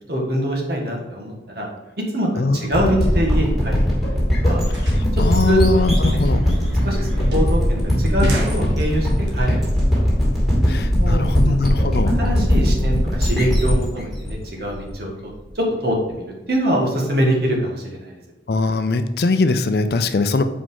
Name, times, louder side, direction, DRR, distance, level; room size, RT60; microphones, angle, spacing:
voice 1, 0.1-1.6 2.1-4.1 4.4-4.6 5.1-6.2 6.8-9.6 9.9-10.1 11.0-11.6 12.2-15.1 15.5-18.1, right 1 dB, 60° right, -1 dB, 1.7 m, -24 dB
voice 2, 2.4-2.8 4.8-4.9 5.2-6.5 10.7-12.2 18.5-20.4, left 3 dB, 60° left, 10 dB, 0.5 m, -21 dB
sound 1, 2.7-15.3, equal, ahead, 2.4 m, -19 dB
sound 2, 4.1-9.3, right 1 dB, 80° right, 1.5 m, -31 dB
5.1 x 4.6 x 5.6 m, 1.1 s
head